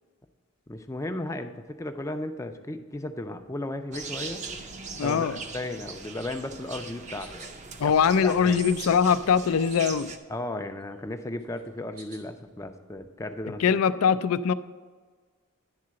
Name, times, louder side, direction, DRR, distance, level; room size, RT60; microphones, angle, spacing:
voice 1, 0.7-4.4 5.0-7.5 7.8-7.9 8.2-8.6 10.3-13.6, left 1 dB, 15° left, 7 dB, 0.4 m, -35 dB
sound 1, 3.9-10.2, right 4 dB, 30° right, 0.5 m, -40 dB
voice 2, 5.0-5.4 7.8-10.1 13.6-14.5, left 6 dB, 70° left, 15 dB, 0.4 m, -22 dB
sound 2, 6.6-7.6 8.1-8.9 9.3-10.4 10.7-12.4, right 3 dB, 85° right, 1.5 m, -53 dB
10.5 x 3.8 x 7.5 m, 1.5 s
head